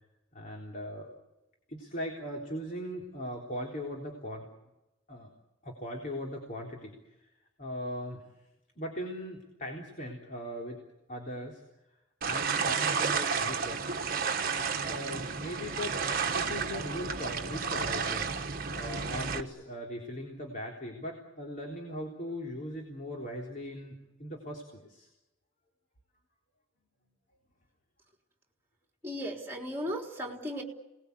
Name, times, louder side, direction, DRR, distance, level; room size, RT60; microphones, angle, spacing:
voice 1, 0.3-1.2 1.7-4.5 5.1-5.3 5.6-7.3 7.6-8.2 8.8-10.8 11.1-11.6 12.2-14.0 14.5-25.1, equal, 40° left, 0 dB, 3.7 m, -39 dB
sound 1, 12.2-19.4, right 5 dB, 45° right, 1.4 m, -31 dB
voice 2, 29.0-30.6, equal, 10° right, 1 dB, 3.7 m, -36 dB
28.5 x 20.0 x 8.2 m, 0.98 s
head